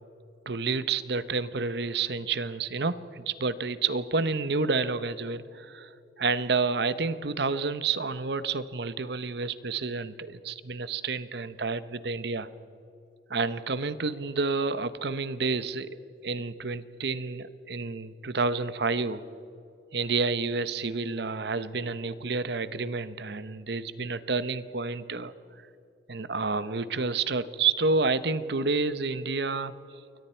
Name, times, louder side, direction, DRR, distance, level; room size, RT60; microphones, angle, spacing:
voice 1, 0.5-5.9 6.2-12.5 13.3-15.9 16.2-19.2 19.9-25.3 26.1-29.7, right 4 dB, 65° right, 14 dB, 0.9 m, -29 dB
29.0 x 22.5 x 4.5 m, 2.9 s
head